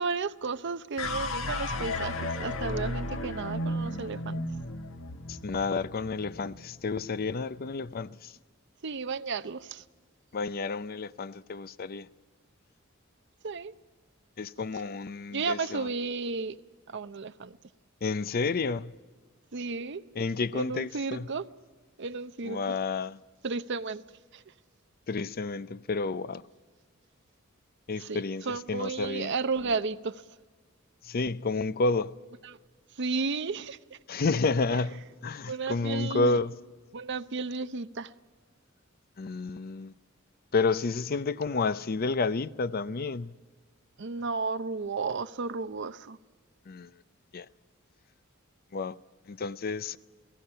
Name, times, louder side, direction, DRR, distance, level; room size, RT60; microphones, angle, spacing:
voice 1, 0.0-4.4 8.8-9.8 13.4-13.7 15.3-16.6 16.9-17.6 19.5-20.0 20.5-21.5 22.0-22.8 23.4-24.0 24.3-24.4 28.0-30.2 32.4-32.6 33.0-34.0 34.7-34.8 35.4-36.4 36.9-38.1 44.0-46.2, right 4 dB, 60° right, 0.7 m, -33 dB
sound 1, 1.0-7.3, left 1 dB, 85° left, 1.5 m, -34 dB
voice 2, 5.3-8.1 10.3-12.1 14.4-15.9 18.0-18.9 20.2-21.3 22.5-23.1 25.1-26.4 27.9-28.4 28.7-29.3 31.1-32.2 34.1-36.5 39.2-39.9 40.5-43.3 46.7-46.9 47.3-47.4 48.7-49.0 49.3-50.0, left 4 dB, 45° left, 0.5 m, -30 dB
29.5 x 18.0 x 5.6 m
head